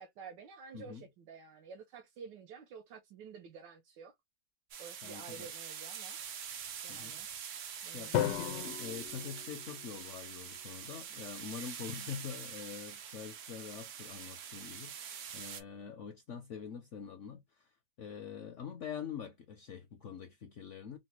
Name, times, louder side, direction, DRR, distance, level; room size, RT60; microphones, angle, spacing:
voice 1, 0.0-4.1 4.8-6.2 6.8-7.3 7.8-8.3, right 6 dB, 90° right, 1.4 m, -50 dB
sound 1, 4.7-15.6, right 8 dB, 65° right, 0.8 m, -45 dB
voice 2, 5.0-5.5 6.9-7.2 7.9-17.7 18.0-21.0, left 7 dB, 70° left, 0.7 m, -45 dB
Drum, 8.1-10.2, left 11 dB, 85° left, 1.2 m, -36 dB
4.1 x 2.1 x 2.9 m
omnidirectional pair, 1.9 m